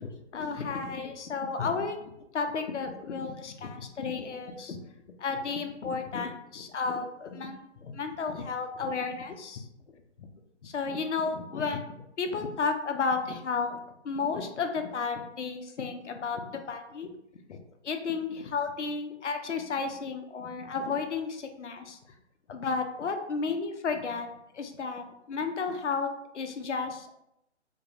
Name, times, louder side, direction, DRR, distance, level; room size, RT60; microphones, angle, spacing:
voice 1, 0.0-4.8 5.1-9.7 10.2-10.3 10.6-11.8 12.2-13.8 14.0-17.6 17.8-22.0 22.5-27.1, left 4 dB, 80° left, 6 dB, 0.5 m, -33 dB
2.4 x 2.2 x 2.9 m, 0.83 s
figure-of-eight pair, 150°, 35 cm